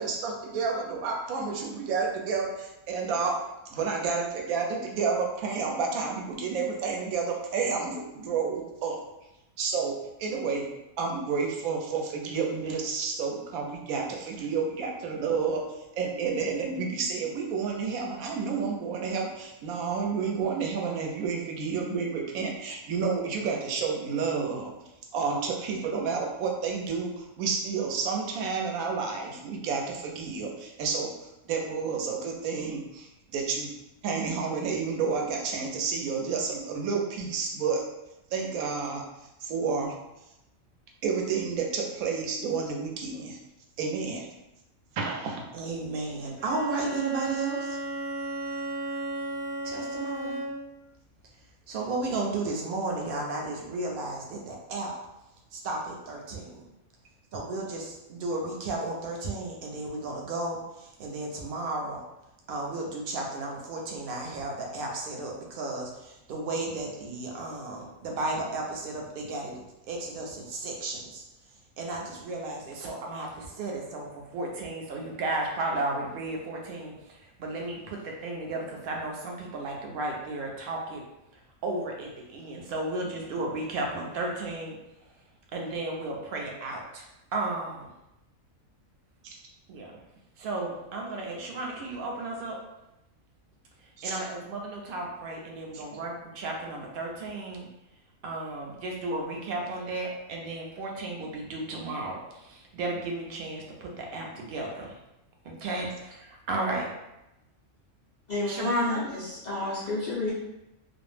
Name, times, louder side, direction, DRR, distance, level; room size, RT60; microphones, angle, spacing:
voice 1, 0.0-3.4 3.7-9.0 9.6-10.7 11.0-15.6 15.9-24.7 25.1-31.1 31.5-33.7 34.0-37.8 38.3-39.0 39.4-39.9 41.0-43.4 43.8-44.2 45.0-45.4 89.2-89.3 94.0-94.2 95.7-95.8, right 5 dB, 85° right, 0 dB, 1.0 m, -30 dB
voice 2, 45.5-47.8 49.6-50.4 51.7-54.9 55.5-56.7 57.3-62.0 62.5-71.2 71.8-81.0 81.3-85.1 85.5-87.0 87.3-87.9 89.7-89.9 90.4-92.6 93.8-97.7 98.2-104.9 105.4-106.9 108.5-109.0, right 2 dB, 60° right, 0 dB, 0.6 m, -34 dB
Bowed string instrument, 46.4-50.8, right 1 dB, 15° left, 0.5 m, -34 dB
voice 3, 108.3-110.3, left 3 dB, 85° left, -8 dB, 0.3 m, -30 dB
2.5 x 2.0 x 3.1 m, 0.92 s
omnidirectional pair, 1.4 m